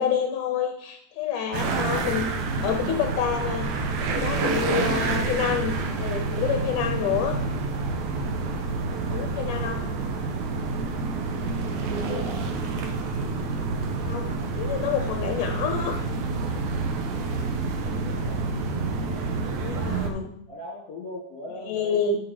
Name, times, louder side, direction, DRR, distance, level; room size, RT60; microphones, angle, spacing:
voice 1, 0.0-2.3 2.5-3.7 4.1-7.4 9.1-9.9 14.0-16.0 19.6-20.3 21.7-22.2, left 7 dB, 75° left, 4 dB, 1.9 m, -28 dB
sound 1, 1.5-20.1, right 4 dB, 65° right, 2.0 m, -28 dB
voice 2, 12.0-12.5 17.4-20.0 20.5-22.2, left 2 dB, 55° left, -1 dB, 1.9 m, -41 dB
12.5 x 5.7 x 5.1 m, 0.74 s
omnidirectional pair, 4.5 m